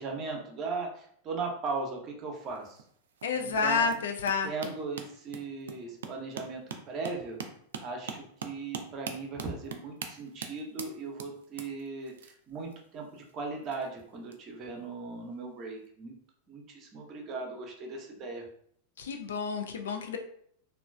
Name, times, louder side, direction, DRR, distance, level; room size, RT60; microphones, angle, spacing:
voice 1, 0.0-2.8 3.3-3.9 4.4-7.4 7.8-16.1 16.5-18.4, right 4 dB, 35° right, 1 dB, 0.7 m, -38 dB
sound 1, 2.4-14.4 15.3-15.5 15.8-15.9, right 6 dB, 60° right, 0.3 m, -43 dB
voice 2, 3.2-4.7 19.0-20.2, left 5 dB, 65° left, 4 dB, 0.4 m, -30 dB
2.9 x 2.4 x 2.3 m, 0.64 s
figure-of-eight pair, 90°, 0 cm